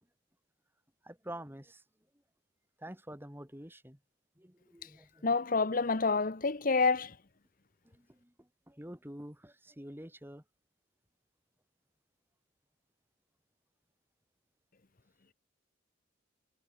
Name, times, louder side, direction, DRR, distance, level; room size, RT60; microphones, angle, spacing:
voice 1, 1.0-1.8 2.8-4.0 4.4-5.3 7.8-10.4, right 1 dB, 10° right, 6.0 m, -48 dB
voice 2, 5.2-7.2, left 4 dB, 45° left, 1.0 m, -28 dB
head